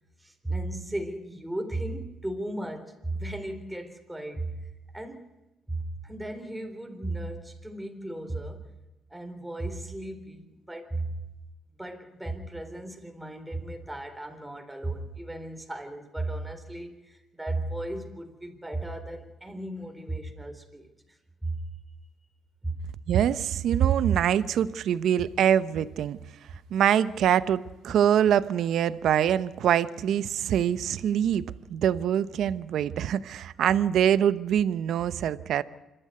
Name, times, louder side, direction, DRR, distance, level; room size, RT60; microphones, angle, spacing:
voice 1, 0.2-4.6 4.9-5.3 5.7-8.6 9.1-11.2 11.8-20.9 21.4-21.6 22.6-22.8, right 2 dB, 5° right, 4 dB, 4.0 m, -35 dB
voice 2, 23.1-26.2 26.7-31.4 31.7-35.6, right 9 dB, 75° right, 16 dB, 0.8 m, -24 dB
26.5 x 12.5 x 9.4 m, 1.0 s
cardioid pair, 90°, 0 cm